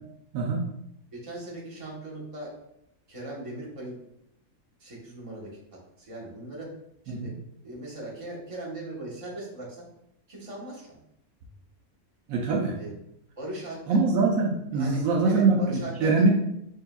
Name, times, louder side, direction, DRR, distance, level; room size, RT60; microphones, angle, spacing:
voice 1, 0.3-0.7 7.1-7.3 12.3-12.8 13.9-16.3, right 3 dB, 75° right, 1 dB, 1.0 m, -23 dB
voice 2, 1.1-2.5 3.1-4.0 4.8-5.5 6.0-6.7 7.0-7.3 7.6-9.9 10.3-11.0 12.8-12.9 13.4-14.0 14.7-16.1, right 2 dB, 25° right, -5 dB, 1.1 m, -39 dB
6.3 x 2.7 x 2.3 m, 0.78 s
omnidirectional pair, 1.5 m